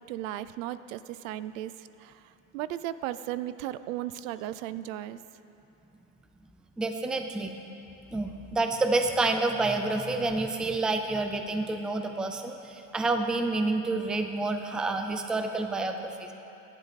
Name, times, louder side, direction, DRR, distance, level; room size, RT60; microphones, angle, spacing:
voice 1, 0.1-5.2, right 13 dB, 80° right, 14 dB, 0.7 m, -36 dB
voice 2, 6.8-7.5 8.1-16.3, right 3 dB, ahead, 5 dB, 0.4 m, -28 dB
26.0 x 11.0 x 4.1 m, 2.9 s
cardioid pair, 160°, 39 cm